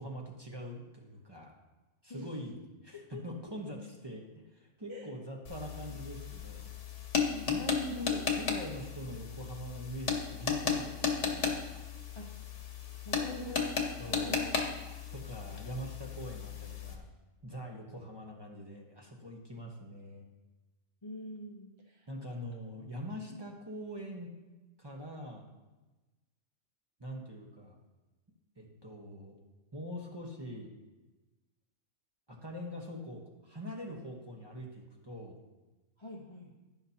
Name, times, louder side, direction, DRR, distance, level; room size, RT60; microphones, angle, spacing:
voice 1, 0.0-1.5 2.0-7.0 7.5-11.6 14.0-14.5 15.1-17.0 17.4-20.2 22.1-24.3 24.8-25.5 27.0-27.8 28.6-29.3 29.7-30.7 32.3-35.4, equal, 20° right, -1 dB, 1.2 m, -43 dB
sound 1, 5.4-17.0, left 6 dB, 60° left, 1.4 m, -35 dB
voice 2, 7.3-7.8 12.2-12.3 13.0-14.7 21.0-22.1 23.3-23.4 36.0-36.5, left 1 dB, 25° left, -1 dB, 0.8 m, -45 dB
11.0 x 10.0 x 2.9 m, 1.1 s
omnidirectional pair, 1.4 m